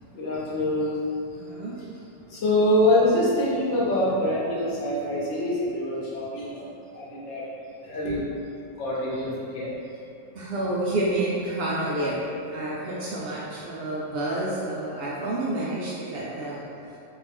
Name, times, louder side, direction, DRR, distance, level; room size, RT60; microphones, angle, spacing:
voice 1, 0.1-1.0 2.3-6.7 6.9-7.5 7.8-8.3 8.8-9.7, left 1 dB, 55° left, -6 dB, 1.0 m, -25 dB
voice 2, 1.3-1.7 10.3-12.2 12.5-16.6, right 1 dB, 75° right, -6 dB, 0.5 m, -29 dB
3.3 x 2.7 x 3.4 m, 2.6 s
omnidirectional pair, 1.6 m